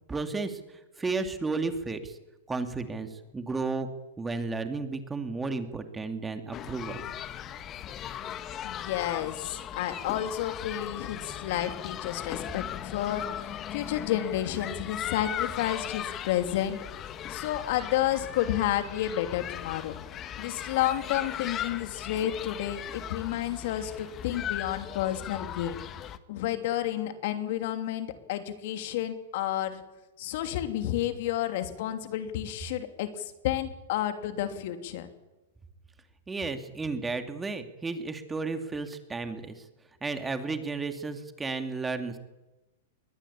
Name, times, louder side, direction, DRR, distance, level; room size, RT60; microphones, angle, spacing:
voice 1, 0.1-0.6 1.0-2.2 2.5-3.9 4.2-7.0 36.3-39.6 40.0-42.2, right 3 dB, 10° right, 7 dB, 2.5 m, -33 dB
sound 1, 6.5-26.2, left 10 dB, 30° left, 1.5 m, -38 dB
voice 2, 8.6-16.8 17.3-20.0 20.4-25.8 26.3-29.8 30.2-35.1, left 12 dB, 60° left, 8 dB, 3.0 m, -31 dB
22.5 x 19.5 x 8.7 m, 1.0 s
hypercardioid pair, 130°, 0 cm